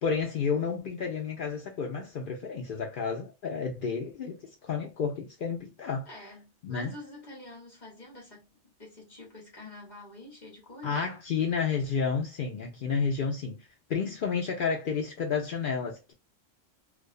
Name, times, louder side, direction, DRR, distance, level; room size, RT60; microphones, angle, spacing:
voice 1, 0.0-6.1 6.6-7.0 10.8-13.6 13.9-16.1, left 5 dB, 60° left, 0.6 m, -31 dB
voice 2, 6.1-8.5 8.8-11.0, left 2 dB, 40° left, 1.1 m, -47 dB
2.4 x 2.3 x 2.3 m
omnidirectional pair, 1.3 m